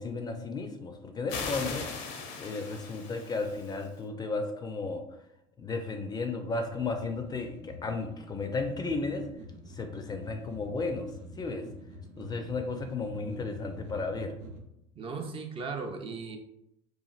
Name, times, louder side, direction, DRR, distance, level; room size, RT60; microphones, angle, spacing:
voice 1, 0.0-1.8 2.4-5.0 5.6-9.2 9.7-11.1 11.4-11.6 12.2-14.3, left 3 dB, 25° left, 5 dB, 0.4 m, -34 dB
sound 1, 1.3-3.9, left 5 dB, 75° left, 0.5 m, -39 dB
sound 2, 6.4-14.6, left 1 dB, 80° right, 0.6 m, -47 dB
voice 2, 15.0-16.4, right 4 dB, 35° right, 4 dB, 0.5 m, -37 dB
3.0 x 2.4 x 2.4 m, 0.80 s
supercardioid pair, 85°, 16 cm